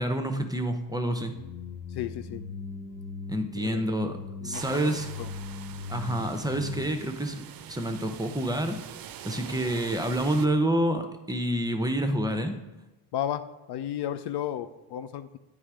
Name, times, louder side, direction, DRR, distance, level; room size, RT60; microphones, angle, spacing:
voice 1, 0.0-1.3 3.3-5.1 5.9-8.8 9.2-12.6, right 1 dB, 10° right, 6 dB, 0.8 m, -28 dB
sound 1, 1.2-7.0, left 4 dB, 45° left, 1.2 m, -40 dB
voice 2, 1.9-2.4 3.6-3.8 4.4-5.3 13.1-15.4, left 11 dB, 65° left, 11 dB, 0.5 m, -34 dB
sound 2, 4.5-10.5, right 10 dB, 55° right, 0.5 m, -44 dB
8.5 x 3.4 x 4.8 m, 1.1 s
supercardioid pair, 70°, 43 cm